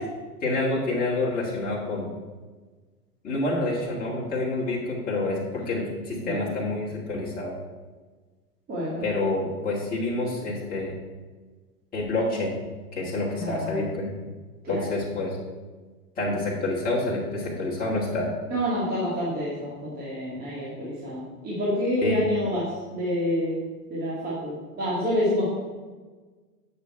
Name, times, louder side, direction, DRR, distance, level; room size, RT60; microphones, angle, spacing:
voice 1, 0.4-2.1 3.2-7.6 9.0-10.9 11.9-12.5 12.9-14.1 14.7-15.4 16.2-18.3 22.0-22.2, left 2 dB, 20° left, -6 dB, 2.0 m, -28 dB
voice 2, 8.7-9.1 13.3-13.8 14.6-14.9 18.5-23.6 23.9-25.5, equal, 20° right, -7 dB, 2.0 m, -28 dB
8.3 x 5.5 x 4.5 m, 1.3 s
hypercardioid pair, 125°, 48 cm